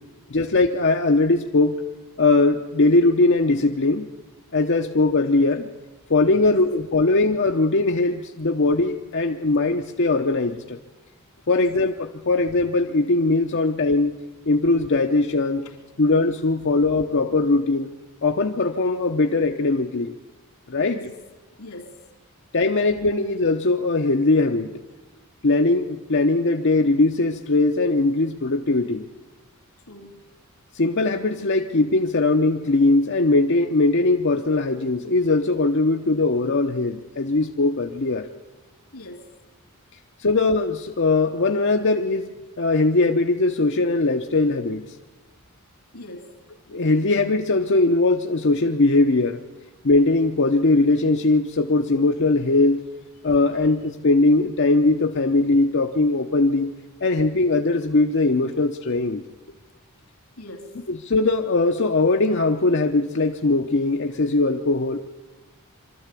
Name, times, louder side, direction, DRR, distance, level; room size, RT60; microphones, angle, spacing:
voice 1, 0.3-1.8 2.2-4.1 4.5-5.7 6.1-10.8 11.5-11.9 12.3-14.1 14.5-15.6 16.0-17.9 18.2-20.2 20.7-21.0 22.5-24.7 25.4-29.1 30.7-38.3 40.2-42.3 42.6-44.8 46.7-49.4 49.8-52.8 53.2-56.7 57.0-59.2 61.1-65.0, left 2 dB, 55° left, 0.8 m, -20 dB
voice 2, 6.4-6.7 10.7-10.8 11.5-11.8 13.5-13.6 15.6-15.8 20.8-21.2 21.6-22.1 22.4-22.5 29.9-30.3 38.9-39.4 45.9-46.4 60.4-60.9, left 1 dB, 90° left, 3.0 m, -42 dB
24.0 x 13.0 x 8.3 m
head